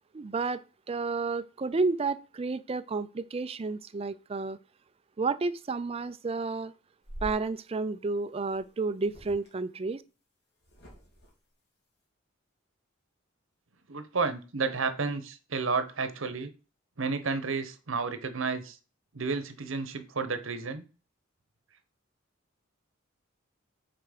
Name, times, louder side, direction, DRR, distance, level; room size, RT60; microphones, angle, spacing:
voice 1, 0.1-4.6 5.2-6.7 7.2-10.0, right 3 dB, 30° right, 0.4 m, -31 dB
sound 1, 7.0-7.4 8.5-8.7 9.0-9.5 10.6-11.3, equal, 55° left, 2.5 m, -44 dB
voice 2, 13.9-16.5 17.0-18.8 19.1-20.8, right 4 dB, 80° right, 0.9 m, -31 dB
6.0 x 4.4 x 5.0 m
head